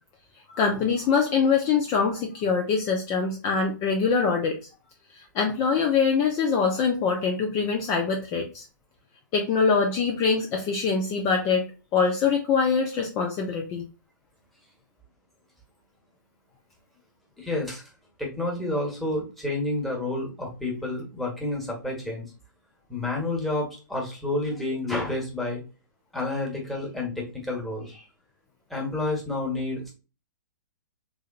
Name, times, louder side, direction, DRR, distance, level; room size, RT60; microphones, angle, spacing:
voice 1, 0.5-4.5 5.1-8.6 9.3-11.6 11.9-13.8, left 5 dB, 30° left, 1 dB, 0.7 m, -24 dB
voice 2, 17.4-17.9 18.2-22.2 22.9-25.6 26.1-28.0 28.7-29.9, left 2 dB, ahead, -2 dB, 1.4 m, -30 dB
3.5 x 3.2 x 2.4 m, 0.31 s
hypercardioid pair, 125°, 11 cm